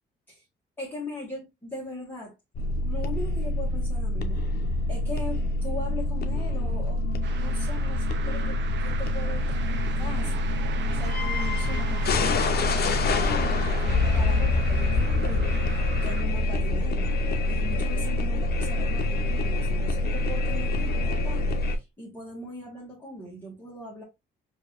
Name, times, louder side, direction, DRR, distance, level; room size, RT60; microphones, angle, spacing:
voice 1, 0.8-2.3 2.8-4.6 4.9-10.5 10.9-17.1 17.5-24.0, left 1 dB, 10° left, 1.4 m, -40 dB
sound 1, 2.5-21.8, left 2 dB, 55° left, 0.7 m, -26 dB
sound 2, 7.2-16.2, right 7 dB, 65° right, 0.6 m, -38 dB
4.6 x 2.7 x 2.4 m
cardioid pair, 90°, 20 cm